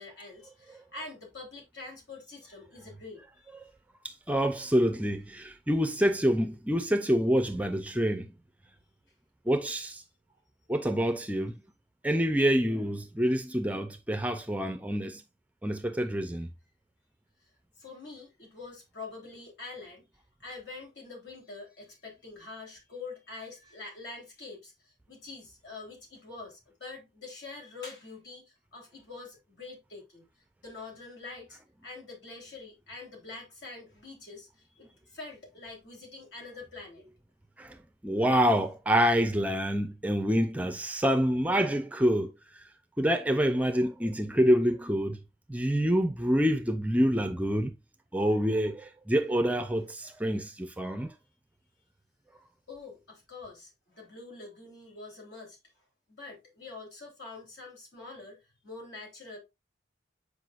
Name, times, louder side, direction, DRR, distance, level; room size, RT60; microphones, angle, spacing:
voice 1, 0.0-3.5 17.8-20.0 20.4-30.3 30.6-34.5 34.8-37.0 52.7-55.6 56.1-59.4, left 3 dB, 70° left, 3.5 m, -45 dB
voice 2, 4.0-8.3 9.5-10.0 10.7-11.6 12.0-15.2 15.6-16.5 37.6-37.8 38.0-42.6 43.0-45.2 45.5-47.7 48.1-51.1, equal, 10° right, 0.4 m, -27 dB
7.7 x 5.0 x 2.4 m
head